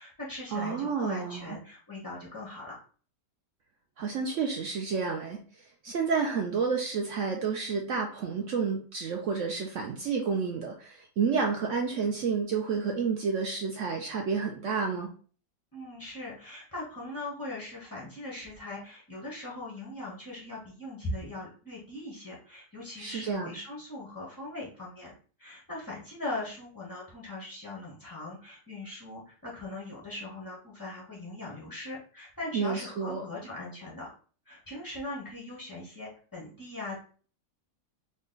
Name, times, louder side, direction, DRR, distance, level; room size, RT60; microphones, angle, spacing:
voice 1, 0.0-2.8 15.7-25.1 25.4-34.1 34.4-37.0, left 2 dB, 25° left, -5 dB, 0.4 m, -40 dB
voice 2, 0.5-1.6 4.0-5.4 5.8-15.1 23.0-23.5 32.5-33.2, right 5 dB, 75° right, 2 dB, 0.6 m, -30 dB
3.8 x 2.2 x 3.7 m, 0.41 s
omnidirectional pair, 1.9 m